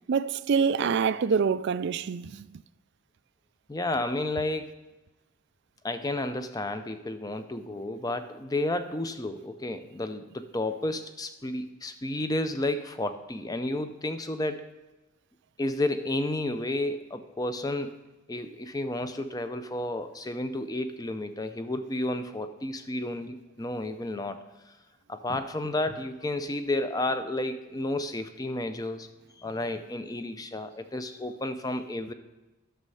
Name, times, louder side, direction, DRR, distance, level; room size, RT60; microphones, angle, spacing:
voice 1, 0.1-2.6, right 6 dB, 50° right, 0.3 m, -26 dB
voice 2, 3.7-4.8 5.8-14.7 15.6-18.0 18.3-24.8 25.1-29.1 29.4-32.1, left 1 dB, 15° left, 0.5 m, -32 dB
11.5 x 6.4 x 5.5 m
head